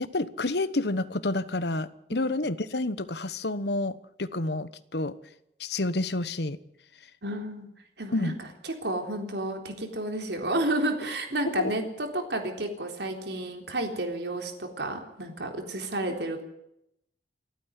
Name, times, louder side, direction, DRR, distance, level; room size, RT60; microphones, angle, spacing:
voice 1, 0.1-5.1 5.6-6.6 8.1-8.3 11.6-11.7, left 2 dB, 70° left, 14 dB, 1.2 m, -29 dB
voice 2, 2.1-2.5 7.2-7.7 8.0-16.4, right 1 dB, 75° right, 4 dB, 3.8 m, -31 dB
28.0 x 9.5 x 9.8 m, 0.80 s
head